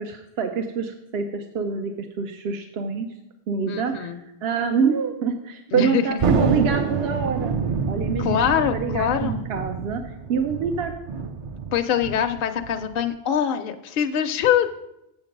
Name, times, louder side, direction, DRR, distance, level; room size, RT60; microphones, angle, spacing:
voice 1, 0.0-3.1 3.5-4.1 4.4-7.6 7.9-10.9, right 6 dB, 80° right, 6 dB, 0.9 m, -26 dB
voice 2, 3.7-4.2 5.7-6.2 8.2-9.4 11.7-14.7, left 9 dB, 65° left, 7 dB, 0.7 m, -23 dB
Thunder, 6.2-13.0, right 5 dB, 50° right, 0.4 m, -27 dB
7.6 x 7.2 x 5.2 m, 0.87 s
omnidirectional pair, 1.0 m